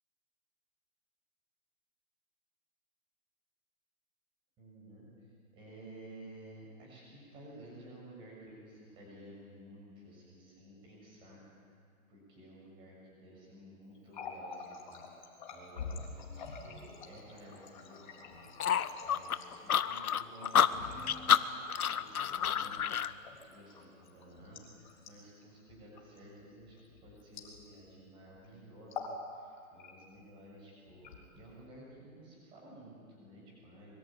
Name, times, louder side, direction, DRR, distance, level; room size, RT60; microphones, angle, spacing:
voice 1, 4.6-5.3 5.5-11.7 12.1-15.0 15.5-18.5 19.0-22.8 23.4-33.9, right 1 dB, 10° right, -3 dB, 6.7 m, -53 dB
Water tap faucet, 14.0-28.0 28.3-28.5 28.8-29.2 29.6-30.2 30.9-31.6, left 5 dB, 35° left, 3.8 m, -48 dB
sound 1, 18.6-23.1, left 8 dB, 80° left, 1.2 m, -29 dB
25.5 x 23.5 x 9.1 m, 2.3 s
hypercardioid pair, 180°, 42 cm